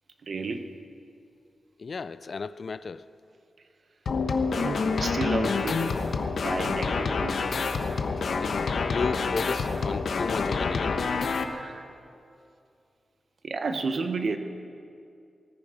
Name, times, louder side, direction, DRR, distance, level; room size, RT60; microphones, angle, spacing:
voice 1, 0.2-0.7 4.5-6.0 6.4-7.4 11.5-11.9 13.4-14.4, right 4 dB, 50° right, 7 dB, 1.0 m, -32 dB
voice 2, 1.8-3.0 8.2-11.1, left 5 dB, 45° left, 15 dB, 0.3 m, -34 dB
sound 1, 4.1-11.4, left 4 dB, 65° left, 0.9 m, -27 dB
19.5 x 14.0 x 4.9 m, 2.5 s
wide cardioid pair, 165°, 0 cm